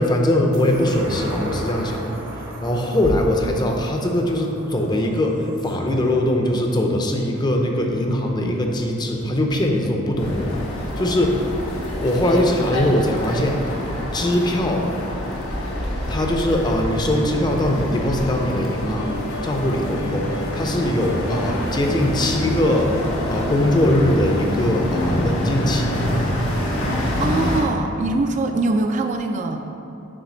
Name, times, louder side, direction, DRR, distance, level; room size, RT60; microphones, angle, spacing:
voice 1, 0.0-2.0 2.6-10.6 11.0-11.3 11.9-13.6 14.1-14.9 16.1-20.3 20.5-22.9 23.3-26.0, left 1 dB, 20° left, 1 dB, 0.5 m, -21 dB
sound 1, 0.5-7.3 7.7-7.8, right 1 dB, 70° right, 1.1 m, -36 dB
sound 2, 10.2-27.6, left 1 dB, 75° left, 1.0 m, -26 dB
sound 3, 17.8-24.6, left 2 dB, 60° left, 0.6 m, -37 dB
voice 2, 27.2-29.7, right 2 dB, 35° right, 5 dB, 0.3 m, -22 dB
7.3 x 3.2 x 5.1 m, 2.8 s
head